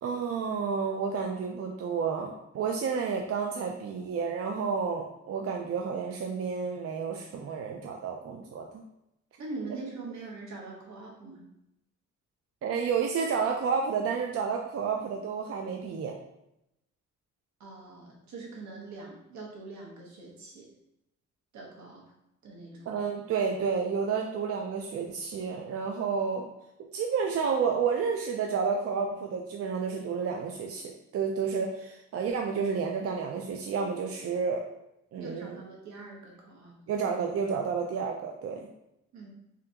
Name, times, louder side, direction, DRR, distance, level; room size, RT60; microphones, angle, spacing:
voice 1, 0.0-8.8 12.6-16.2 22.9-26.5 26.9-34.6 35.1-35.6 36.9-38.7, right 5 dB, 55° right, 1 dB, 0.4 m, -30 dB
voice 2, 9.4-11.4 17.6-20.7 21.5-22.0 22.4-23.0 35.2-36.8 39.1-39.3, right 3 dB, 75° right, -1 dB, 1.1 m, -43 dB
3.7 x 3.3 x 2.8 m, 0.84 s
cardioid pair, 130°, 29 cm